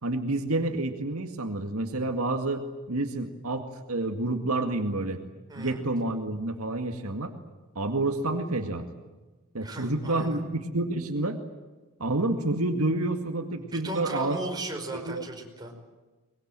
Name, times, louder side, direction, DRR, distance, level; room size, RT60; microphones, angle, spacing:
voice 1, 0.0-5.2 5.6-7.3 7.8-8.8 9.5-11.4 12.0-14.4 14.9-15.2, right 2 dB, 75° right, 5 dB, 2.1 m, -29 dB
voice 2, 5.5-5.8 9.6-10.5 13.6-15.7, right 1 dB, 20° right, 1 dB, 5.1 m, -36 dB
23.5 x 22.0 x 9.0 m, 1.2 s
head